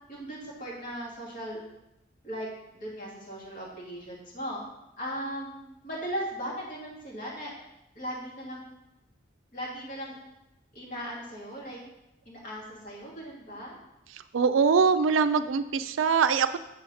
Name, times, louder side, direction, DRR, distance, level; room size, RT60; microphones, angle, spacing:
voice 1, 0.1-1.6 2.2-4.6 5.0-5.6 5.8-7.5 8.0-8.6 9.5-10.2 10.7-11.8 12.3-13.8, equal, 45° left, -5 dB, 2.5 m, -37 dB
voice 2, 14.3-16.6, right 5 dB, 75° right, 11 dB, 0.4 m, -23 dB
7.1 x 4.8 x 5.6 m, 0.91 s
head